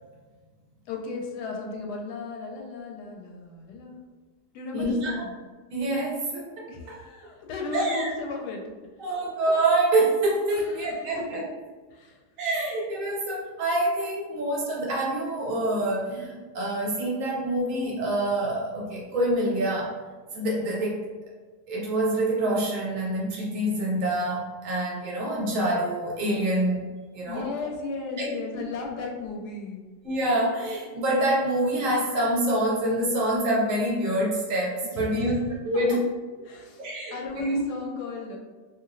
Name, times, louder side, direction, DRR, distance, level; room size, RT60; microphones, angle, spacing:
voice 1, 0.9-4.1 4.5-5.3 6.7-8.9 10.5-11.4 11.9-12.2 27.3-29.8 34.9-35.4 36.4-36.8 37.1-38.4, left 4 dB, 85° left, 0 dB, 1.1 m, -35 dB
voice 2, 4.7-5.3 5.7-7.0 7.7-8.1 9.0-11.5 12.4-19.9 20.3-21.1 21.7-26.9 27.1-27.5 30.0-36.0 36.8-37.6, right 1 dB, 65° right, -3 dB, 1.0 m, -26 dB
2.9 x 2.7 x 2.5 m, 1.4 s
omnidirectional pair, 1.7 m